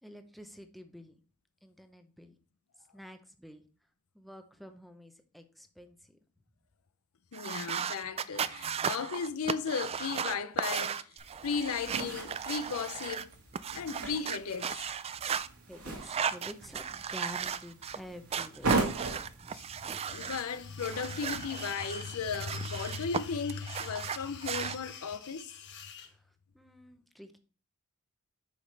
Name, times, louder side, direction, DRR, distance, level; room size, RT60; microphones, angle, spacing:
voice 1, 0.0-1.2 1.6-2.4 2.9-3.6 4.1-6.2 15.2-15.4 15.7-18.8 26.0-26.2 26.5-27.4, equal, ahead, 0.7 m, -49 dB
voice 2, 7.3-11.0 11.4-13.3 13.7-15.0 19.5-19.7 20.1-25.5, left 5 dB, 75° left, 0.6 m, -36 dB
sound 1, 7.3-13.2 13.5-15.5 16.0-18.0 18.3-20.4 20.8-23.2 23.5-24.8, right 7 dB, 30° right, 0.3 m, -36 dB
sound 2, 11.2-21.5, right 3 dB, 85° right, 2.3 m, -38 dB
sound 3, 20.0-26.1, left 6 dB, 55° left, 1.3 m, -48 dB
8.4 x 5.9 x 3.3 m
head